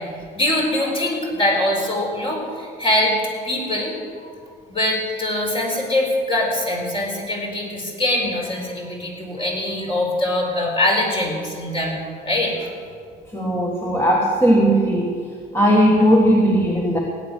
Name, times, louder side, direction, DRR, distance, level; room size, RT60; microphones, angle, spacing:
voice 1, 0.3-3.2 3.4-4.3 4.7-12.0 12.2-12.7, left 1 dB, 30° left, -1 dB, 4.5 m, -23 dB
voice 2, 13.3-15.1 15.5-17.0, equal, 15° left, -1 dB, 1.7 m, -17 dB
17.0 x 9.9 x 6.4 m, 2.2 s
cardioid pair, 110°, 17 cm